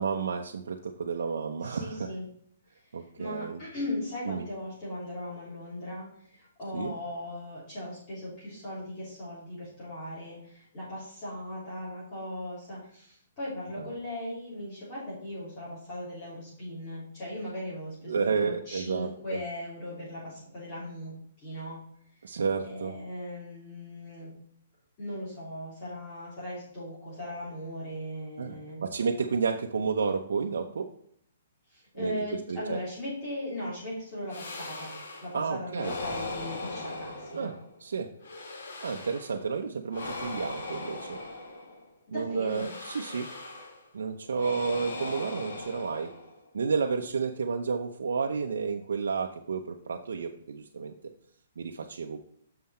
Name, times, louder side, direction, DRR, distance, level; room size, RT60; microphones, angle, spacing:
voice 1, 0.0-2.1 2.9-3.6 4.3-4.5 6.7-6.9 13.8-13.9 18.1-19.4 22.2-22.9 28.4-30.9 32.0-32.8 35.3-36.0 37.3-37.5 37.8-38.1 38.8-41.2 42.1-43.3 43.9-46.1 46.5-50.9 51.6-52.2, right 5 dB, 85° right, 2 dB, 0.7 m, -31 dB
voice 2, 1.6-2.2 2.7-21.8 22.7-24.3 25.0-28.9 31.7-34.9 35.2-37.5 42.1-42.7, left 1 dB, 25° left, -9 dB, 3.4 m, -38 dB
sound 1, 34.3-35.4 35.8-37.8 38.2-39.4 39.9-41.9 42.4-43.9 44.3-46.5, left 2 dB, 65° left, 1.8 m, -39 dB
6.7 x 5.7 x 4.3 m, 0.66 s
hypercardioid pair, 170°, 0 cm